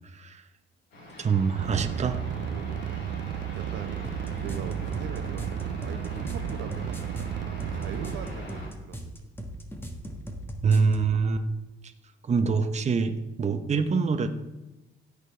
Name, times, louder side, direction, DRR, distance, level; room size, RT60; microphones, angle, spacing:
voice 1, 0.1-0.4 1.2-2.2 10.6-11.4 12.2-14.3, right 5 dB, 35° right, 7 dB, 0.9 m, -25 dB
sound 1, 0.9-8.7, equal, 70° left, 3.9 m, -43 dB
sound 2, 1.6-8.4, right 10 dB, 65° right, 0.5 m, -33 dB
voice 2, 2.5-2.8 3.6-4.0 4.4-7.1 7.7-9.3, right 7 dB, 85° right, 6 dB, 1.1 m, -41 dB
sound 3, 4.0-11.1, equal, 10° left, 1.6 m, -39 dB
16.5 x 6.7 x 3.3 m, 1.0 s
cardioid pair, 90°, 20 cm